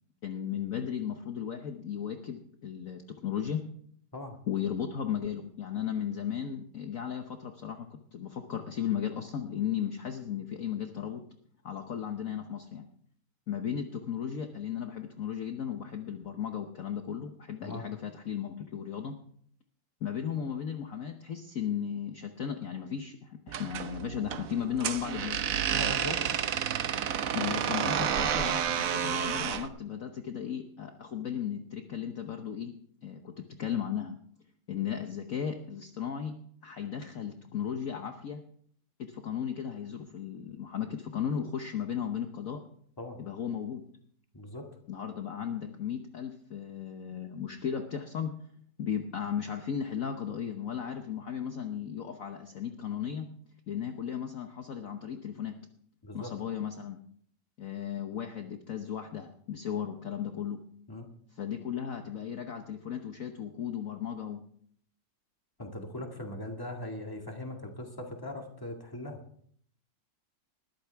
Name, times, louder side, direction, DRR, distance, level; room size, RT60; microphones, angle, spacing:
voice 1, 0.2-3.6 4.5-11.2 11.6-12.9 13.5-19.2 20.0-25.4 27.3-32.7 33.0-34.2 34.7-36.3 36.6-38.4 39.0-42.6 43.2-43.8 44.9-48.3 48.8-53.3 53.7-55.6 56.1-57.0 57.6-60.6 61.4-64.4, left 8 dB, 55° left, 5 dB, 1.2 m, -35 dB
sound 1, 23.5-29.7, right 9 dB, 60° right, 1.1 m, -30 dB
voice 2, 25.7-26.3 43.0-43.2 44.3-44.7 56.0-56.3 60.9-61.1 65.6-69.2, left 1 dB, 10° left, 2 dB, 1.9 m, -40 dB
20.5 x 14.0 x 3.5 m, 0.62 s
omnidirectional pair, 2.0 m